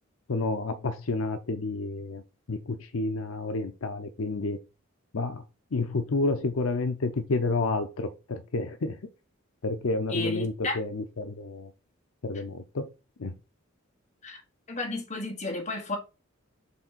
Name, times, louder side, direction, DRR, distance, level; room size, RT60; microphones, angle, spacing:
voice 1, 0.3-2.2 2.5-4.6 5.1-5.4 5.7-9.0 9.6-11.7 12.2-12.9 13.2-13.3, left 3 dB, 75° left, 0.6 m, -30 dB
voice 2, 10.1-10.8 14.2-14.4 14.7-16.0, left 2 dB, 35° left, 1.4 m, -32 dB
7.0 x 3.7 x 4.1 m
head